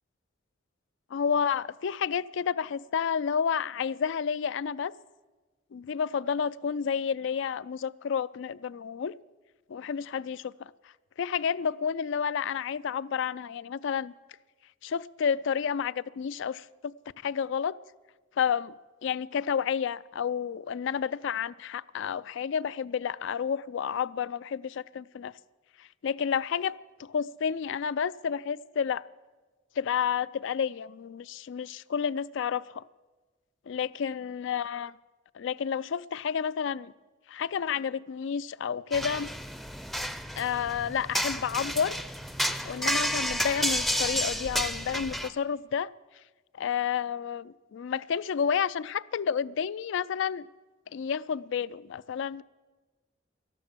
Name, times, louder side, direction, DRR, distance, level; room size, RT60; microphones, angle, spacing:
voice 1, 1.1-4.9 5.7-9.1 9.7-10.7 11.2-14.1 14.8-16.9 17.2-17.8 18.4-18.7 19.0-25.3 26.0-29.0 29.8-32.8 33.7-34.9 35.3-36.9 37.3-39.3 40.4-42.0 42.7-45.9 46.6-50.5 50.9-52.4, left 7 dB, 65° left, 19 dB, 0.4 m, -30 dB
sound 1, 38.9-45.3, equal, ahead, 0.5 m, -31 dB
12.5 x 12.0 x 7.4 m, 1.3 s
head